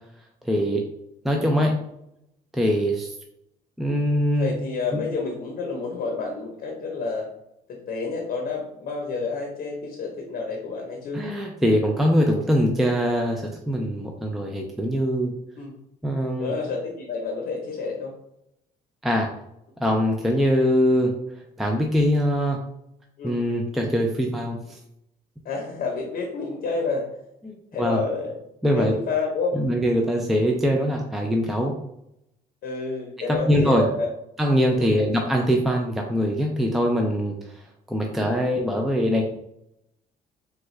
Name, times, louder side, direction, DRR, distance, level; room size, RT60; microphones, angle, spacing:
voice 1, 0.4-0.8 1.2-1.7 2.5-3.1 3.8-4.5 4.9-5.0 11.1-15.3 16.0-16.5 19.0-19.3 19.8-21.1 21.6-22.6 23.2-24.8 27.5-28.0 28.6-28.9 29.5-31.8 33.3-33.9 34.4-37.6 37.9-39.2, equal, ahead, 1 dB, 0.3 m, -22 dB
voice 2, 1.3-1.7 4.4-7.3 7.7-11.2 12.2-12.7 15.6-15.8 16.4-18.2 23.2-23.5 25.4-27.2 27.7-28.3 28.7-29.6 32.6-34.1 34.7-35.0 38.1-38.6, left 4 dB, 55° left, 0 dB, 0.7 m, -30 dB
3.5 x 2.2 x 3.1 m, 0.81 s
cardioid pair, 110°, 17 cm